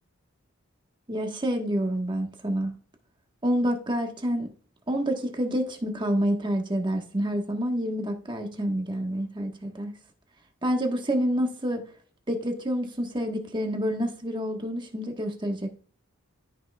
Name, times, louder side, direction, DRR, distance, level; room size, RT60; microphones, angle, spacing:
voice 1, 1.1-2.7 3.4-4.5 4.9-9.9 10.6-11.9 12.3-15.7, equal, 20° right, 1.2 m, -28 dB
13.5 x 5.9 x 2.3 m
head